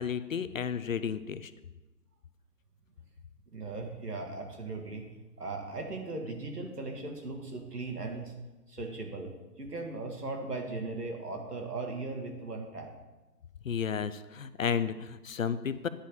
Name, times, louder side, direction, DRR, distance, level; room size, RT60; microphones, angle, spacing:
voice 1, 0.0-1.5 13.6-15.9, left 7 dB, 55° left, 14 dB, 0.6 m, -32 dB
voice 2, 3.5-5.0 5.4-8.3 8.7-9.3 9.6-12.9, right 3 dB, 75° right, 2 dB, 2.2 m, -38 dB
10.0 x 4.9 x 7.0 m, 1.1 s
figure-of-eight pair, 140°, 47 cm